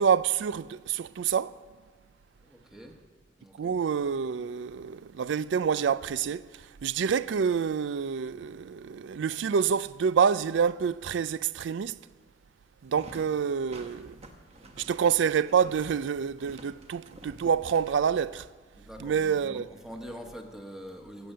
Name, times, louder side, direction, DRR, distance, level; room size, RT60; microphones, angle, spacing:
voice 1, 0.0-1.5 3.6-6.5 6.8-12.0 12.8-14.2 14.8-18.5 19.0-19.6, right 7 dB, 70° right, 0.4 m, -27 dB
voice 2, 2.4-3.0 3.4-3.7 18.7-21.3, equal, 5° right, 1.2 m, -44 dB
sound 1, 12.8-18.5, right 1 dB, 35° right, 1.1 m, -50 dB
15.0 x 7.8 x 6.7 m
head